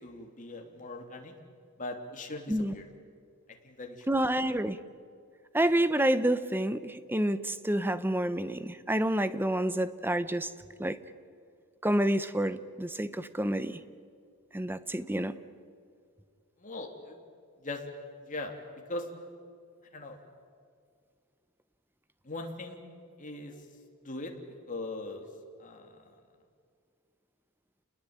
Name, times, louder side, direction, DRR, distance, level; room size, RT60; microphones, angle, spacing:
voice 1, 0.0-1.3 1.8-2.9 3.6-4.2 4.5-4.6 16.6-17.2 17.6-17.9 18.2-18.5 18.9-19.1 19.9-20.2 22.2-22.8 23.2-23.6 24.0-24.3 24.7-25.3 25.6-26.1, left 2 dB, 35° left, 2 dB, 3.1 m, -40 dB
voice 2, 4.1-4.8 5.5-10.5 10.8-11.0 11.8-13.8 14.5-15.3, right 1 dB, 10° right, 13 dB, 0.8 m, -28 dB
29.5 x 20.5 x 8.9 m, 2.2 s
head